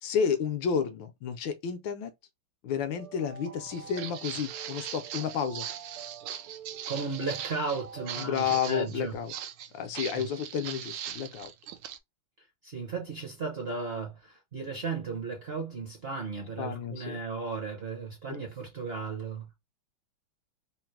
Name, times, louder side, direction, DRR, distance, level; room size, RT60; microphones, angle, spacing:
voice 1, 0.0-2.1 2.6-5.7 8.2-9.3 9.7-11.5 16.6-17.2 18.3-18.4, left 7 dB, 70° left, 1.2 m, -31 dB
sound 1, 2.9-8.6, right 8 dB, 90° right, 1.6 m, -48 dB
Walk footsteps, 3.7-12.0, right 10 dB, 75° right, 1.1 m, -40 dB
voice 2, 6.9-9.2 10.1-10.3 12.6-19.5, right 4 dB, 45° right, 0.8 m, -35 dB
4.0 x 2.1 x 4.4 m
omnidirectional pair, 2.4 m